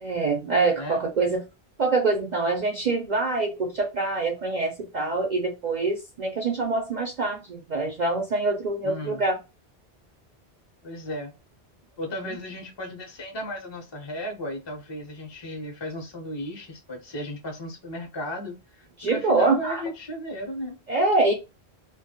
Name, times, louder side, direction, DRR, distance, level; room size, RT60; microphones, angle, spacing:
voice 1, 0.0-1.4 1.8-9.4 12.1-12.3 19.0-19.8 20.9-21.3, right 3 dB, 55° right, 0.6 m, -25 dB
voice 2, 8.8-9.2 10.8-11.3 12.0-20.7, left 1 dB, 30° left, 0.6 m, -35 dB
2.2 x 2.1 x 2.7 m
omnidirectional pair, 1.1 m